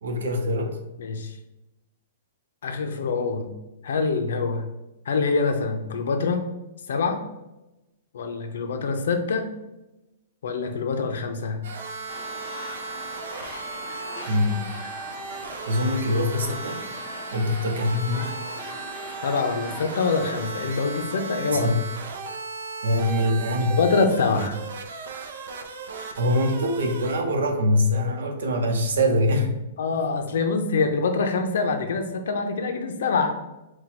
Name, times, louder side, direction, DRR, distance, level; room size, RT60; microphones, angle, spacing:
voice 1, 0.0-0.8 14.3-14.7 15.7-16.8 17.3-18.3 21.5-21.8 22.8-23.8 26.2-29.6, left 1 dB, 85° right, 4 dB, 0.8 m, -23 dB
voice 2, 1.0-1.4 2.6-3.5 3.8-4.7 5.1-6.5 6.9-7.2 8.1-9.5 10.4-11.6 19.2-21.8 23.6-24.6 29.8-33.5, left 4 dB, 65° left, 5 dB, 0.6 m, -25 dB
sound 1, 11.6-27.1, right 4 dB, 60° right, 0.5 m, -36 dB
sound 2, 12.1-21.1, left 3 dB, 25° left, 0.7 m, -41 dB
4.4 x 2.3 x 4.2 m, 0.98 s
hypercardioid pair, 175°, 0 cm